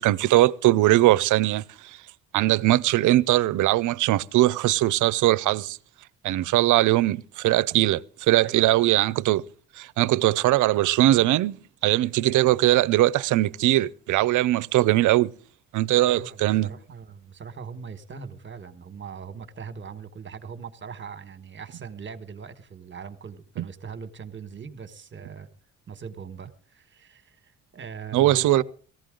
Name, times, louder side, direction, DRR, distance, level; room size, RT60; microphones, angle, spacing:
voice 1, 0.0-2.0 2.3-5.8 6.2-9.4 9.8-11.6 11.8-15.3 15.7-16.7 23.6-23.7 28.1-28.6, right 16 dB, 80° right, 0.6 m, -21 dB
voice 2, 16.1-25.5 25.9-28.6, right 6 dB, 40° right, 1.4 m, -40 dB
18.0 x 15.0 x 3.8 m
cardioid pair, 90°, 30 cm